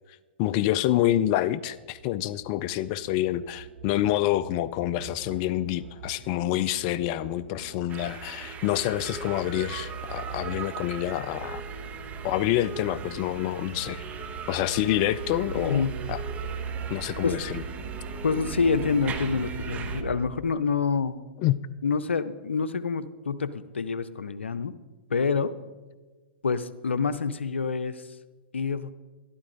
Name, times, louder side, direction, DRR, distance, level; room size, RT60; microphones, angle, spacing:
voice 1, 0.4-11.6 12.2-14.0 14.5-16.2 16.9-17.6 21.4-21.6, left 13 dB, 40° left, 16 dB, 0.4 m, -27 dB
sound 1, 1.9-20.2, right 5 dB, 50° right, 1.7 m, -39 dB
sound 2, 7.9-20.0, right 6 dB, 25° right, 1.0 m, -40 dB
voice 2, 15.6-16.0 17.2-17.4 18.2-21.2 21.8-24.7 25.1-25.5 26.4-28.0 28.5-28.9, left 5 dB, 90° left, 14 dB, 0.6 m, -27 dB
12.5 x 11.5 x 3.9 m, 1.3 s
hypercardioid pair, 120°, 6 cm